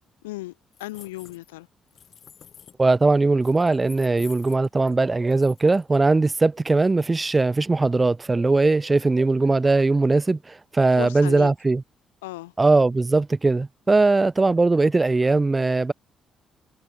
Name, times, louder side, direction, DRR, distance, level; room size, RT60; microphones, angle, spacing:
voice 1, 0.2-0.5 0.8-1.7 10.9-11.5 12.2-12.5, left 19 dB, 75° left, 1.6 m, -35 dB
sound 1, 0.7-1.6 1.9-2.8 3.4-5.0 5.3-6.0, left 8 dB, 50° left, 4.7 m, -48 dB
voice 2, 2.8-11.8 12.6-15.9, right 3 dB, 25° right, 1.7 m, -20 dB
figure-of-eight pair, 45°, 0 cm